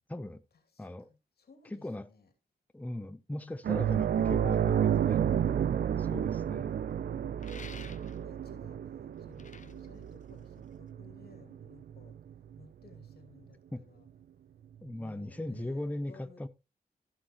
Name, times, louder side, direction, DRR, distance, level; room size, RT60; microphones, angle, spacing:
voice 1, 0.1-0.4 0.8-1.1 1.6-2.1 2.7-5.5 6.0-6.8 13.7-13.8 14.8-16.5, left 1 dB, 10° left, 0.8 m, -39 dB
voice 2, 0.7-2.3 3.4-3.6 5.9-6.2 7.4-12.1 12.6-14.1 14.9-16.5, left 5 dB, 80° left, 2.7 m, -57 dB
sound 1, 3.6-12.6 12.9-13.1 15.2-15.3, right 9 dB, 80° right, 0.5 m, -31 dB
sound 2, 7.4-8.4 9.2-10.9, left 5 dB, 50° left, 0.9 m, -51 dB
16.0 x 6.0 x 3.1 m
cardioid pair, 60°, 16 cm